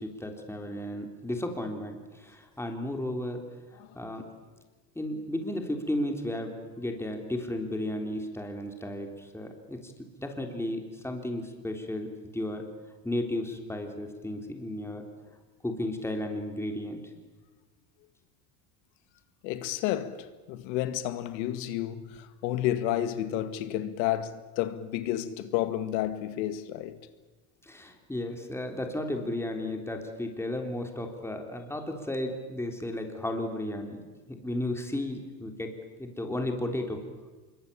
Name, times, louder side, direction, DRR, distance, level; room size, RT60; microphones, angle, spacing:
voice 1, 0.0-3.4 4.0-4.2 5.0-9.9 10.2-12.6 13.0-15.0 15.6-17.0 27.6-34.0 34.4-35.7 36.0-37.0, left 1 dB, 5° left, 3.6 m, -34 dB
voice 2, 19.4-27.1, left 12 dB, 85° left, 2.1 m, -31 dB
25.5 x 23.0 x 8.6 m
cardioid pair, 130°, 50 cm